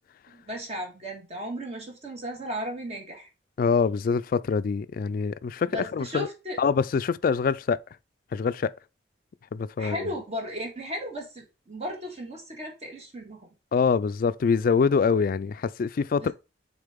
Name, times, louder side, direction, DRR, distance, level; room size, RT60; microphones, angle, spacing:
voice 1, 0.3-3.3 5.7-6.6 9.8-13.5 16.2-16.3, equal, 35° right, 1.8 m, -35 dB
voice 2, 3.6-6.3 6.6-7.8 8.3-8.7 9.5-10.0 13.7-16.3, left 5 dB, 50° left, 0.3 m, -24 dB
6.7 x 4.2 x 3.6 m
head